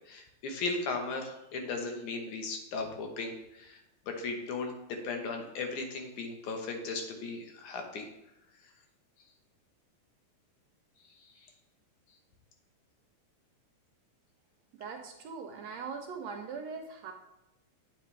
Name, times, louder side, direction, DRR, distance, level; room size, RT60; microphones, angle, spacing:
voice 1, 0.1-8.1 11.4-11.5, left 3 dB, 75° left, 3 dB, 2.5 m, -37 dB
voice 2, 14.8-17.1, right 5 dB, 70° right, 3 dB, 1.8 m, -41 dB
9.4 x 7.7 x 3.3 m, 0.90 s
omnidirectional pair, 3.6 m